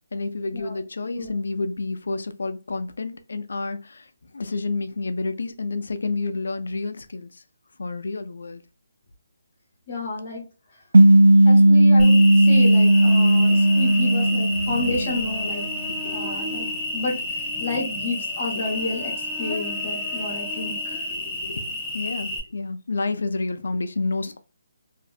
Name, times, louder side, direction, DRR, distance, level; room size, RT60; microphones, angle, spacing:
voice 1, 0.1-4.1 4.3-7.4 7.8-8.6 14.7-14.9 16.0-16.2 21.2-24.4, left 3 dB, 70° left, 0.4 m, -29 dB
voice 2, 9.9-10.4 11.4-15.7 16.1-19.1 19.4-21.0, left 2 dB, 35° left, 0.8 m, -30 dB
sound 1, 10.9-15.6, right 1 dB, 85° right, 0.4 m, -15 dB
Cricket, 12.0-22.4, left 2 dB, 5° left, 0.4 m, -30 dB
2.5 x 2.0 x 2.3 m
hypercardioid pair, 175°, 0 cm